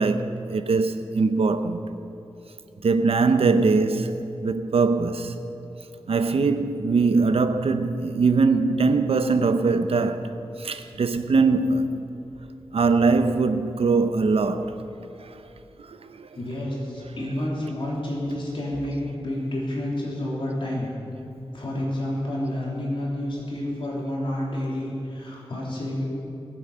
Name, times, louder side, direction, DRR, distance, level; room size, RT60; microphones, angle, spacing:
voice 1, 0.0-1.8 2.8-5.3 6.1-10.3 10.6-12.1 12.7-14.8 15.2-15.3 15.8-16.4 17.2-17.3, right 4 dB, 75° right, 0.7 m, -22 dB
voice 2, 16.3-20.9 21.5-26.0, left 1 dB, 60° left, 3.3 m, -29 dB
20.5 x 7.7 x 5.7 m
wide cardioid pair, 115°, 10 cm